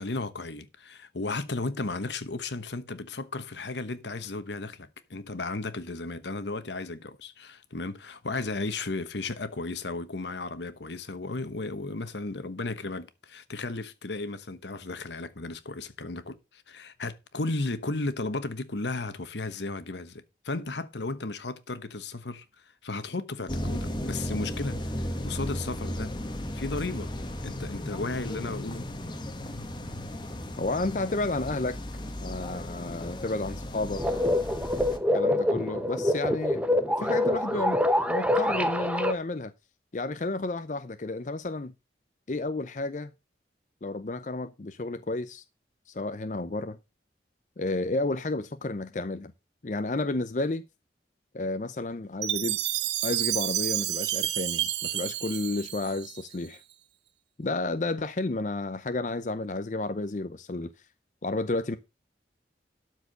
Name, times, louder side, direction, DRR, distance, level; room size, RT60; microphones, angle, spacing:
voice 1, 0.0-26.1 26.5-27.1 27.4-28.9, left 3 dB, 80° left, 1.1 m, -34 dB
sound 1, 23.5-35.0, left 1 dB, 25° left, 1.2 m, -35 dB
voice 2, 30.6-31.8 32.2-34.0 35.1-37.8 38.1-39.5 39.9-41.7 42.3-43.1 43.8-45.4 45.9-46.8 47.6-49.3 49.6-50.6 51.3-52.6 53.0-56.6 57.4-60.7 61.2-61.8, left 2 dB, 45° left, 0.6 m, -31 dB
sound 2, 34.0-39.1, left 1 dB, 5° right, 0.7 m, -25 dB
Chime, 52.2-56.5, right 13 dB, 75° right, 0.9 m, -30 dB
12.5 x 4.7 x 6.6 m
head